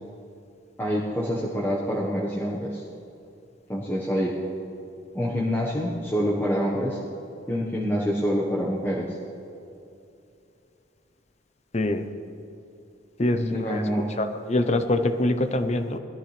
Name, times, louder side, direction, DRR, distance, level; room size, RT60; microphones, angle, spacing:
voice 1, 0.8-2.8 3.7-4.3 5.1-7.0 7.5-9.2 13.3-14.1, equal, 10° left, -6 dB, 1.3 m, -26 dB
voice 2, 11.7-12.1 13.2-13.8 14.2-16.0, left 1 dB, 35° left, 9 dB, 0.7 m, -24 dB
21.5 x 13.5 x 3.4 m, 2.7 s
head